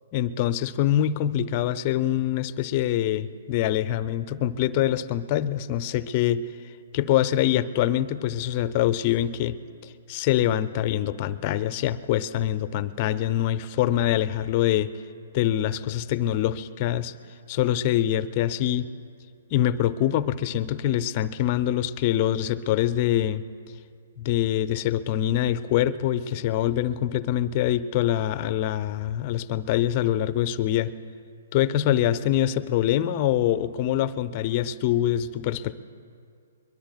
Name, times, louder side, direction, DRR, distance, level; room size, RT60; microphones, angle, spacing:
voice 1, 0.1-6.5 6.9-9.6 9.8-14.9 15.3-17.1 17.5-18.9 19.5-23.4 24.2-30.9 31.5-35.8, left 11 dB, 35° left, 14 dB, 0.5 m, -24 dB
22.5 x 22.0 x 2.3 m, 2.3 s
figure-of-eight pair, 125°, 0 cm